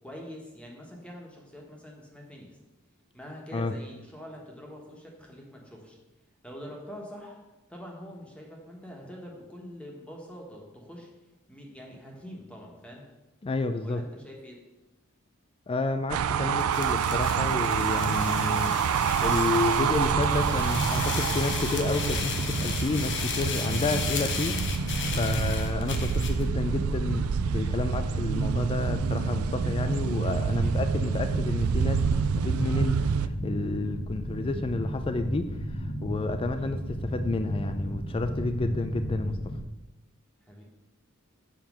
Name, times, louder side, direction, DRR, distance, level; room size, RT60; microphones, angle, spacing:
voice 1, 0.0-2.6 3.1-6.0 6.4-7.4 7.7-11.1 11.5-13.0 13.8-14.6 30.5-31.2 36.6-36.7 40.4-40.6, equal, 5° left, -1 dB, 1.4 m, -45 dB
voice 2, 13.4-14.0 15.7-18.7 19.2-27.2 27.5-39.4, left 3 dB, 25° left, 8 dB, 0.4 m, -30 dB
sound 1, 16.1-33.3, right 7 dB, 85° right, 0.4 m, -28 dB
sound 2, 16.6-26.4, left 5 dB, 60° left, 1.0 m, -35 dB
sound 3, 20.0-39.6, equal, 75° left, 1.7 m, -34 dB
7.4 x 4.5 x 6.2 m, 1.0 s
head